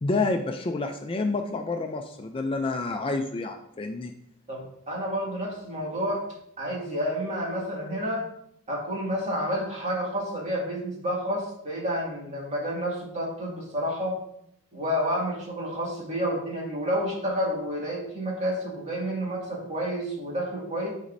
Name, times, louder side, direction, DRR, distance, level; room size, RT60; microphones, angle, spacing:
voice 1, 0.0-4.1, left 3 dB, 25° left, 5 dB, 0.4 m, -28 dB
voice 2, 4.5-6.2 6.6-8.3 8.7-14.2 14.7-20.9, equal, 30° right, -4 dB, 2.1 m, -30 dB
11.5 x 4.1 x 2.6 m, 0.74 s
head